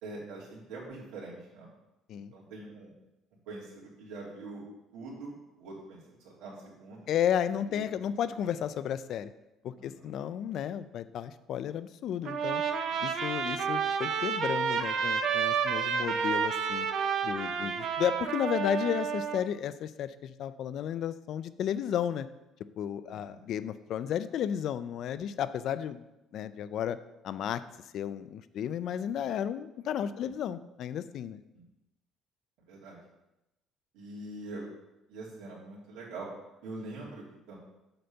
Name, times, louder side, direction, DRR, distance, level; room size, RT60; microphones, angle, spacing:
voice 1, 0.0-1.7 2.3-2.9 3.5-4.6 4.9-6.0 6.4-7.1 7.7-7.8 9.8-10.1 12.9-13.0 13.4-13.7 17.5-17.7 23.1-23.5 30.1-30.3 32.7-33.0 33.9-34.7 35.1-36.3 36.6-37.5, right 2 dB, 85° right, -5 dB, 3.0 m, -44 dB
voice 2, 7.1-9.3 9.6-12.6 13.0-16.9 17.2-22.3 22.8-26.0 26.3-27.0 27.2-27.6 27.9-31.4, left 9 dB, 50° left, 14 dB, 0.4 m, -33 dB
Trumpet, 12.2-19.4, right 6 dB, 50° right, 0.7 m, -30 dB
7.8 x 4.1 x 6.7 m, 0.95 s
cardioid pair, 170°, 0 cm